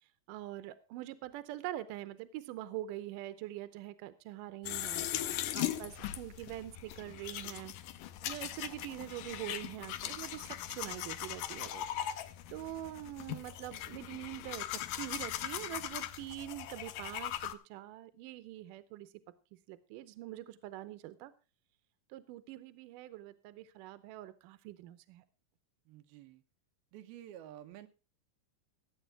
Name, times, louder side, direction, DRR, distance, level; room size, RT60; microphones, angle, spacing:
voice 1, 0.3-5.1 5.5-7.7 8.2-11.9 12.2-19.1 19.7-21.3 22.1-25.2, right 15 dB, 75° right, 14 dB, 2.2 m, -44 dB
sound 1, 4.6-17.5, left 12 dB, 75° left, 2.1 m, -40 dB
voice 2, 5.1-5.5 25.9-26.4 26.9-27.9, right 12 dB, 90° right, 8 dB, 2.8 m, -51 dB
15.5 x 8.3 x 4.7 m, 0.32 s
omnidirectional pair, 4.3 m